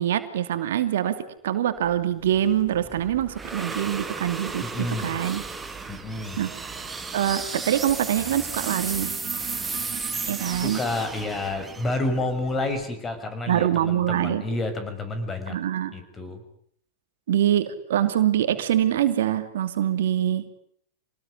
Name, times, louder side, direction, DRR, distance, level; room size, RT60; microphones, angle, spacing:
voice 1, 0.0-5.4 6.4-6.5 7.1-9.1 10.3-10.8 13.5-14.5 15.5-15.9 17.3-20.5, right 11 dB, 70° right, 9 dB, 2.6 m, -24 dB
sound 1, 1.8-13.1, right 4 dB, 15° right, 2.5 m, -35 dB
voice 2, 4.6-5.1 5.9-6.4 10.5-15.6 15.9-16.4, left 2 dB, 20° left, 8 dB, 6.9 m, -29 dB
sound 2, 5.3-12.9, right 10 dB, 45° right, 4.5 m, -43 dB
26.5 x 19.5 x 9.9 m, 0.65 s
hypercardioid pair, 100°, 0 cm